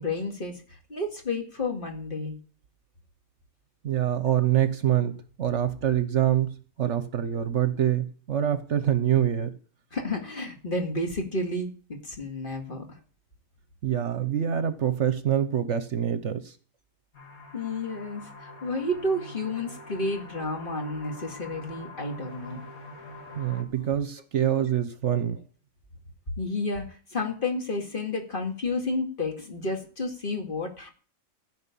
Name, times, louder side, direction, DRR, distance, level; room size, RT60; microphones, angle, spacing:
voice 1, 0.0-2.3 9.9-11.7 12.0-13.0 17.5-22.6 26.4-30.9, left 2 dB, 35° left, 2.2 m, -31 dB
voice 2, 3.8-9.5 13.8-16.5 23.4-25.4, right 10 dB, 60° right, 1.1 m, -25 dB
sound 1, 17.1-23.6, left 2 dB, 80° left, 3.0 m, -44 dB
15.0 x 5.1 x 8.4 m
omnidirectional pair, 1.5 m